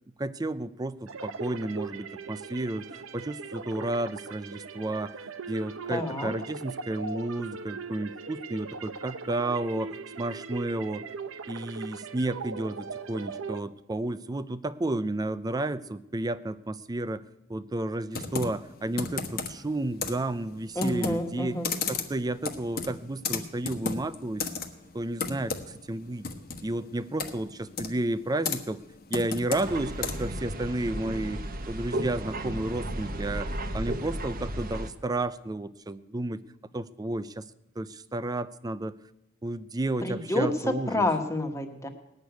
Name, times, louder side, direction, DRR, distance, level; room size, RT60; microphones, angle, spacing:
voice 1, 0.2-5.1 5.5-11.0 11.5-17.2 17.5-21.6 21.9-24.4 24.9-26.3 26.6-28.8 29.1-31.4 31.7-36.4 36.7-37.4 37.8-39.0 39.4-41.1, right 2 dB, 20° right, 15 dB, 0.4 m, -32 dB
sound 1, 1.1-13.6, right 4 dB, 85° right, 0.8 m, -40 dB
voice 2, 5.9-6.3 20.7-21.7 40.0-41.9, left 1 dB, 15° left, 5 dB, 1.4 m, -29 dB
Computer keyboard, 18.1-30.4, left 4 dB, 50° left, 1.3 m, -35 dB
sound 2, 29.6-34.9, right 1 dB, 45° right, 1.0 m, -34 dB
18.0 x 6.6 x 9.3 m, 0.89 s
head